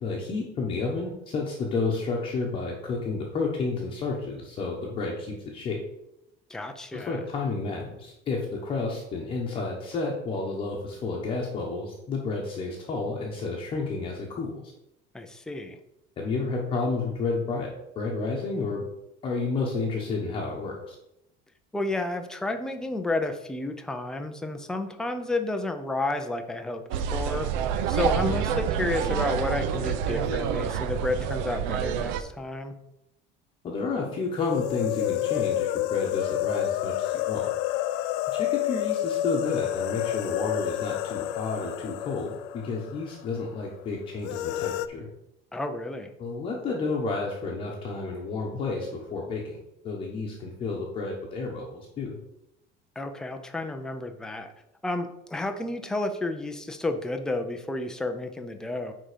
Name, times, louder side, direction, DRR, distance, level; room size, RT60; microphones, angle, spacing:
voice 1, 0.0-5.8 6.9-14.6 16.2-17.7 18.0-18.8 19.2-20.9 28.1-28.4 33.6-37.5 38.3-45.1 46.2-52.2, left 3 dB, 30° left, -2 dB, 1.1 m, -31 dB
voice 2, 6.5-7.2 15.1-15.8 21.7-26.8 27.1-27.5 27.9-32.8 45.5-46.1 53.0-54.5 54.8-58.9, left 2 dB, 5° left, 5 dB, 0.5 m, -31 dB
Amb int barco Paros-Santorini, 26.9-32.2, right 8 dB, 75° right, 0.7 m, -28 dB
sound 1, 34.4-43.2 43.5-43.6 44.2-44.9, left 13 dB, 85° left, 0.5 m, -29 dB
9.6 x 3.8 x 5.0 m, 0.85 s
cardioid pair, 180°, 19 cm